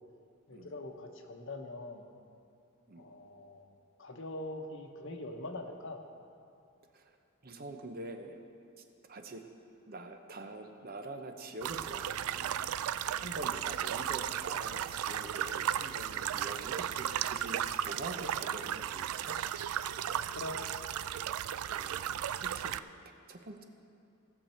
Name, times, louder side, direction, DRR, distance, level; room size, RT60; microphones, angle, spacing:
voice 1, 0.5-2.0 3.0-3.7 4.0-6.0 20.0-20.6, left 1 dB, 60° left, 4 dB, 1.0 m, -43 dB
voice 2, 7.4-8.4 8.8-9.4 9.9-12.8 13.2-19.4 21.7-22.7 23.0-23.6, right 2 dB, 45° right, 5 dB, 0.8 m, -45 dB
sound 1, 11.6-22.8, right 10 dB, 85° right, 0.3 m, -35 dB
18.0 x 6.7 x 4.3 m, 2.5 s
head